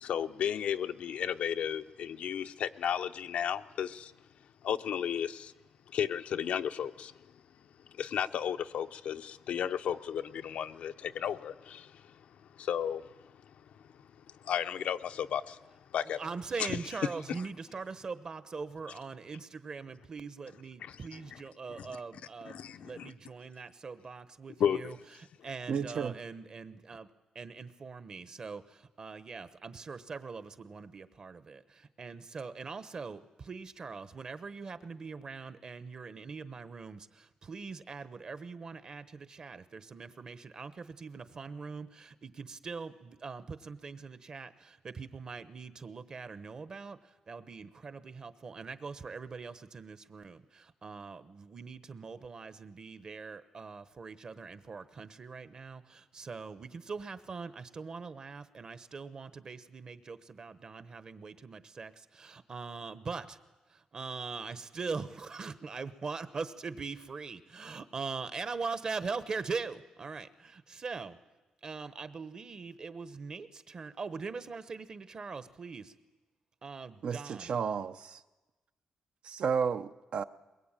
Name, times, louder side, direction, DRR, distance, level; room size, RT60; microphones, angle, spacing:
voice 1, 0.0-4.1 4.6-5.5 5.9-7.1 7.9-12.0 12.6-13.1 14.4-15.6 15.9-16.2 16.6-16.8 20.8-21.0 21.3-21.4 21.8-21.9 22.4-23.1 24.6-24.9, left 9 dB, 75° left, 0.8 m, -33 dB
voice 2, 16.0-27.1 27.3-63.4 63.7-71.2 71.6-75.9 76.6-77.5, right 4 dB, 35° right, 1.1 m, -42 dB
voice 3, 25.7-26.2 77.0-78.2 79.2-80.2, right 6 dB, 55° right, 0.8 m, -32 dB
22.0 x 22.0 x 9.0 m
wide cardioid pair, 150°, 2 cm